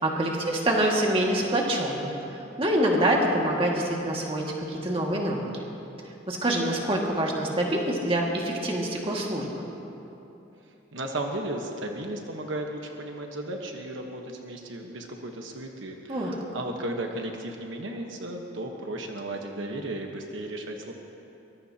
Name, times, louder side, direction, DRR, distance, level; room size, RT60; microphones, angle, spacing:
voice 1, 0.0-2.1 2.6-5.5 6.3-9.6 16.1-16.3, right 1 dB, 30° right, -2 dB, 2.0 m, -25 dB
voice 2, 10.9-20.9, right 1 dB, 75° right, 2 dB, 1.2 m, -35 dB
23.5 x 21.0 x 2.9 m, 3.0 s
head